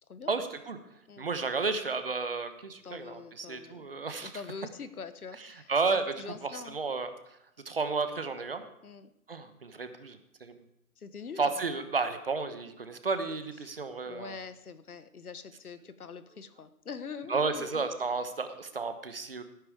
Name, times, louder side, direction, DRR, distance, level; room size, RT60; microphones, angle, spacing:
voice 1, 0.3-0.8 1.2-4.3 5.7-7.1 7.6-8.7 9.3-10.5 11.4-14.3 17.3-19.4, right 4 dB, 40° right, 9 dB, 1.1 m, -32 dB
voice 2, 2.8-3.9 4.2-6.8 8.8-9.1 11.0-11.5 13.6-13.8 14.0-17.8, left 5 dB, 70° left, 13 dB, 1.3 m, -44 dB
17.0 x 9.6 x 4.8 m, 0.83 s
hypercardioid pair, 175°, 46 cm